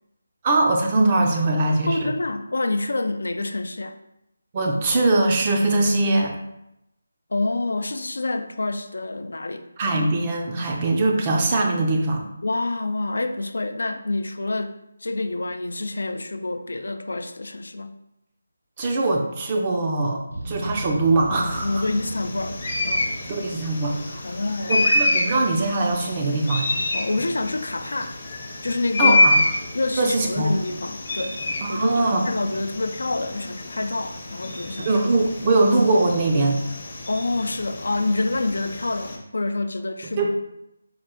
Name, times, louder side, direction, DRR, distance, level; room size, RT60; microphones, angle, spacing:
voice 1, 0.4-2.0 4.5-6.3 9.8-12.2 18.8-21.8 23.3-24.2 24.7-26.7 29.0-29.4 30.0-30.5 31.6-32.2 34.9-36.7 40.2-40.3, right 2 dB, 25° right, 1 dB, 0.5 m, -21 dB
voice 2, 1.9-4.0 7.3-9.7 12.4-17.9 21.6-23.1 24.2-24.9 26.9-28.2 28.6-29.4 29.7-31.4 31.7-35.0 37.1-40.3, left 2 dB, 80° left, 8 dB, 0.4 m, -27 dB
sound 1, 20.3-24.5, right 1 dB, 75° right, 0.7 m, -37 dB
sound 2, 21.5-39.2, left 2 dB, 40° left, 0.6 m, -27 dB
4.4 x 2.3 x 3.7 m, 0.84 s
figure-of-eight pair, 170°, 0 cm